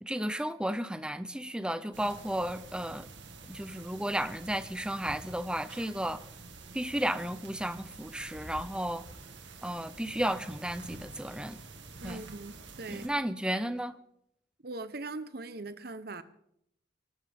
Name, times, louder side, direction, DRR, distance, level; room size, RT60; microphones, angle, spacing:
voice 1, 0.0-3.1 3.5-6.2 6.7-9.0 9.6-11.6 12.0-12.3 12.9-14.0, right 1 dB, 5° right, 12 dB, 0.6 m, -33 dB
sound 1, 1.9-13.1, right 3 dB, 75° right, 2.1 m, -48 dB
voice 2, 12.0-13.1 14.6-16.2, right 2 dB, 55° right, 12 dB, 1.0 m, -41 dB
25.5 x 12.0 x 3.7 m, 0.73 s
head